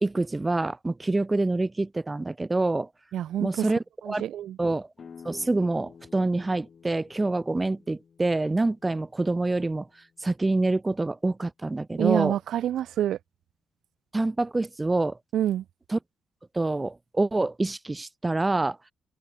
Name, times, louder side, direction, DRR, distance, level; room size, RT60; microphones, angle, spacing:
voice 1, 0.0-2.9 3.4-4.2 4.6-4.9 5.2-9.9 10.2-12.3 14.1-15.2 15.9-16.0 16.5-18.8, right 2 dB, 20° right, 0.8 m, -26 dB
voice 2, 3.1-3.7 4.0-4.6 12.0-13.2 15.3-15.6, right 11 dB, 65° right, 0.6 m, -27 dB
sound 1, 5.0-10.5, left 6 dB, 45° left, 3.7 m, -52 dB
open air
figure-of-eight pair, 40°, 0 cm